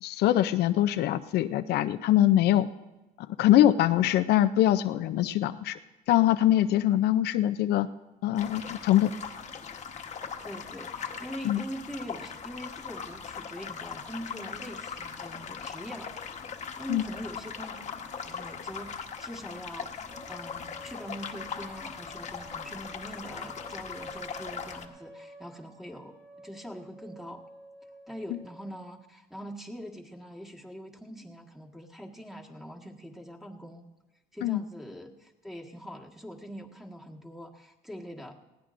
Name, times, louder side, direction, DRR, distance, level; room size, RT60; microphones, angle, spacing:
voice 1, 0.0-2.7 3.3-5.8 6.1-7.9 8.2-9.1 11.4-11.6 16.9-17.0 34.4-34.6, left 13 dB, 75° left, 10 dB, 0.5 m, -23 dB
sound 1, 8.3-24.9, left 6 dB, 45° left, 1.2 m, -40 dB
voice 2, 10.4-16.1 16.6-27.4 28.1-33.9 34.3-38.3, equal, ahead, 1 dB, 1.6 m, -43 dB
sound 2, 20.1-29.1, right 1 dB, 20° right, 3.0 m, -50 dB
20.0 x 16.0 x 2.6 m, 1.1 s
cardioid pair, 110°, 17 cm